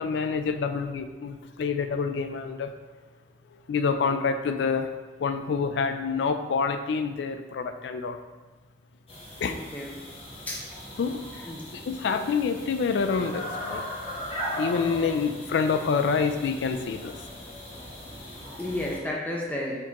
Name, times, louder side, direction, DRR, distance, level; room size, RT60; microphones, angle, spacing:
voice 1, 0.0-2.7 3.7-4.9 5.2-8.2 9.4-9.6 11.0-13.8 14.6-17.1, left 5 dB, 75° left, 7 dB, 0.3 m, -27 dB
sound 1, 9.1-19.0, equal, 30° left, 0.9 m, -38 dB
voice 2, 9.5-9.9 10.5-10.6 11.5-11.9 18.6-19.8, left 1 dB, 10° left, -4 dB, 0.6 m, -32 dB
4.4 x 3.7 x 2.9 m, 1.2 s
head